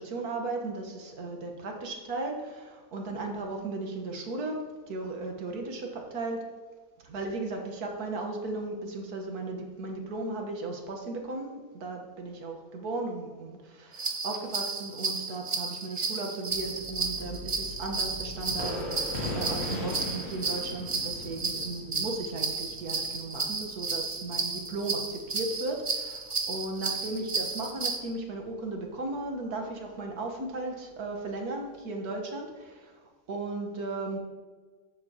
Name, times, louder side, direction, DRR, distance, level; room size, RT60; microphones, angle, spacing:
voice 1, 0.0-6.4 7.0-33.0 33.3-34.2, right 2 dB, 85° right, 2 dB, 1.8 m, -36 dB
sound 1, 13.9-28.0, right 4 dB, 35° right, 0.4 m, -33 dB
sound 2, 16.5-25.8 26.0-26.1 26.5-26.6, left 1 dB, 45° left, 2.3 m, -39 dB
13.0 x 7.6 x 2.9 m, 1.4 s
omnidirectional pair, 1.6 m